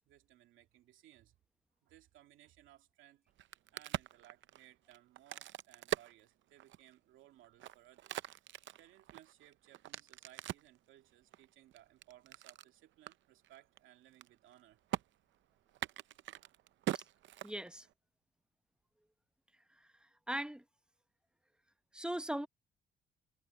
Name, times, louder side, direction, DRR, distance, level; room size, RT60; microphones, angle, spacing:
voice 1, 0.0-1.4 1.8-8.2 8.8-14.8, right 13 dB, 85° right, 2.5 m, -62 dB
Crack, 3.3-6.9 7.4-10.8 11.3-12.7 13.1-13.2 13.4-13.8 14.1-14.6 14.9-15.0 15.7-17.9, right 13 dB, 70° right, 0.6 m, -42 dB
voice 2, 17.4-17.9 19.8-20.6 21.9-22.5, right 1 dB, 5° right, 0.9 m, -40 dB
cardioid pair, 90°, 20 cm